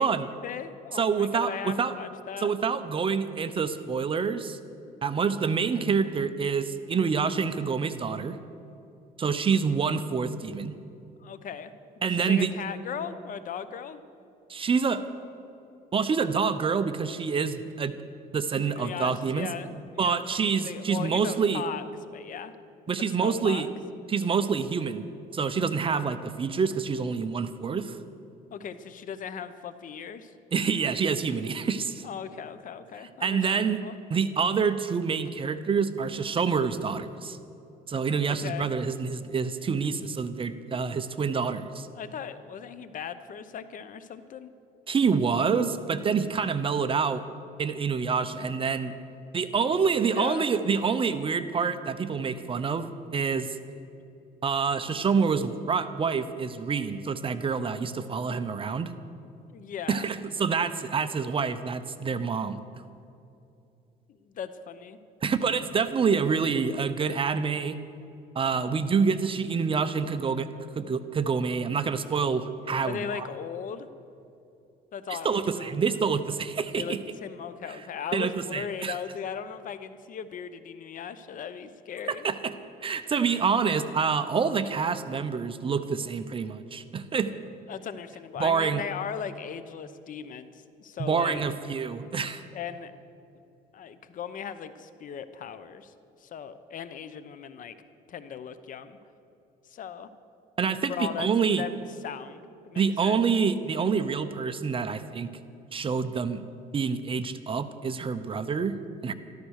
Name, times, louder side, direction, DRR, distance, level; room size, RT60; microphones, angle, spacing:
voice 1, 0.0-2.5 11.2-14.0 18.5-22.5 23.0-23.7 25.5-25.7 28.5-30.3 32.0-34.0 38.3-38.7 41.9-44.5 50.1-50.5 59.5-60.0 64.1-65.0 72.8-73.9 74.9-75.7 76.6-82.3 87.7-91.4 92.5-92.9 93.7-95.9 96.2-97.7 98.1-99.0 99.7-100.1 100.9-101.7 102.0-103.2, left 7 dB, 50° left, 12 dB, 0.9 m, -38 dB
voice 2, 0.9-1.9 2.4-4.6 5.0-8.4 9.2-10.8 12.0-12.5 14.5-15.0 15.9-18.0 18.3-19.5 20.0-21.6 22.9-23.7 24.1-25.0 25.3-28.0 30.5-32.0 33.2-33.8 34.1-37.4 37.9-41.9 44.9-47.2 47.6-48.9 49.3-53.6 54.4-58.9 59.9-62.6 65.2-67.8 68.3-70.5 70.8-73.3 75.2-77.0 78.1-79.0 82.1-82.5 82.8-87.3 88.4-88.8 91.0-92.4 100.6-101.6 102.8-105.3 105.7-106.4 106.7-108.8 109.0-109.1, right 5 dB, 30° right, 11 dB, 0.8 m, -27 dB
13.5 x 13.0 x 6.5 m, 2.7 s
cardioid pair, 110°, 17 cm